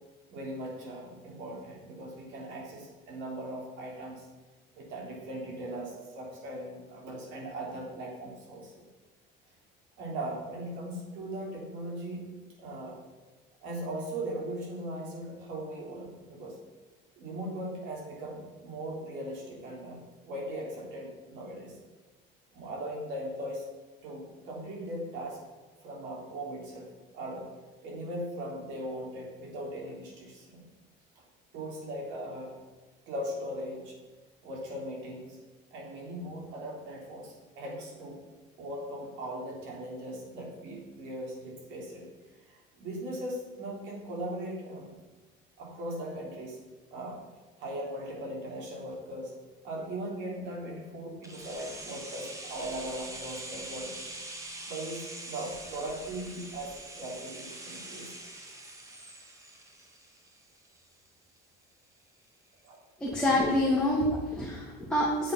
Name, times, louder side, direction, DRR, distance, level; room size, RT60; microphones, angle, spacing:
voice 1, 0.3-4.3 4.7-8.8 10.0-12.3 12.6-13.0 13.6-16.6 17.2-20.0 20.3-21.8 22.5-23.7 24.0-25.4 25.8-26.9 27.1-27.5 27.8-30.6 31.5-32.6 33.1-34.0 34.4-35.4 35.7-38.2 38.6-42.1 42.5-44.9 45.6-46.6 46.9-47.2 47.6-49.3 49.6-54.0 54.7-58.1 62.6-62.8, right 1 dB, 75° right, -2 dB, 3.6 m, -39 dB
sound 1, 51.2-61.1 61.4-61.5, right 2 dB, 15° right, 1.3 m, -44 dB
voice 2, 63.0-65.3, left 1 dB, 5° left, -4 dB, 1.6 m, -27 dB
8.4 x 7.9 x 5.6 m, 1.3 s
cardioid pair, 145°, 19 cm